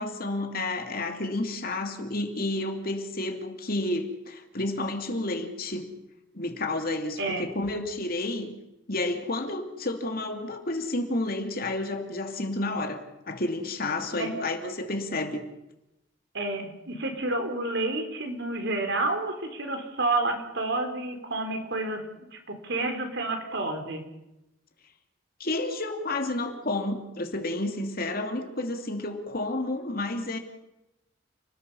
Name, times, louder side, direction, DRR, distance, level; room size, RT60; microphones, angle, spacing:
voice 1, 0.0-5.9 6.3-8.5 8.9-15.4 25.4-30.4, left 2 dB, 50° left, 5 dB, 2.9 m, -30 dB
voice 2, 16.3-22.0 22.3-24.0, right 2 dB, 60° right, 5 dB, 4.2 m, -29 dB
30.0 x 20.5 x 5.7 m, 0.91 s
head